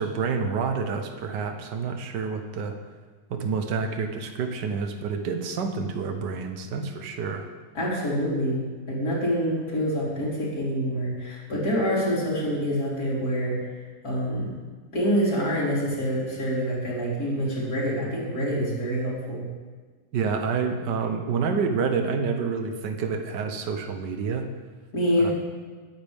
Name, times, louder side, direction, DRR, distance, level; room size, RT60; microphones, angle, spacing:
voice 1, 0.0-2.8 3.3-7.4 20.1-24.5 25.2-25.3, right 5 dB, 70° right, 5 dB, 1.7 m, -28 dB
voice 2, 7.7-13.6 14.0-14.5 14.9-19.4 24.9-25.3, equal, 50° left, -6 dB, 4.3 m, -26 dB
21.5 x 10.0 x 3.5 m, 1.4 s
omnidirectional pair, 2.0 m